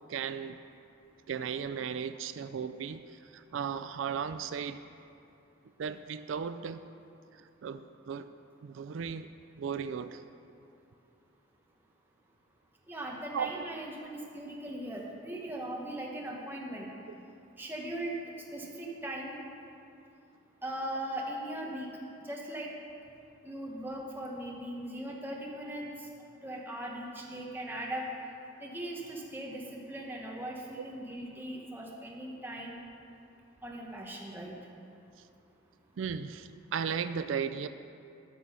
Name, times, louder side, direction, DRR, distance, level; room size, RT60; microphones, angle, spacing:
voice 1, 0.1-0.6 1.3-4.8 5.8-6.8 7.3-8.3 8.6-9.3 9.6-10.2 13.3-13.6 36.0-37.7, right 7 dB, 85° right, 11 dB, 0.4 m, -36 dB
voice 2, 12.9-16.9 17.6-18.2 18.5-19.4 20.6-21.9 22.2-22.7 23.4-25.8 26.4-28.1 28.6-32.8 33.6-34.5, right 1 dB, 10° right, -2 dB, 1.2 m, -39 dB
13.0 x 6.2 x 5.6 m, 2.6 s
head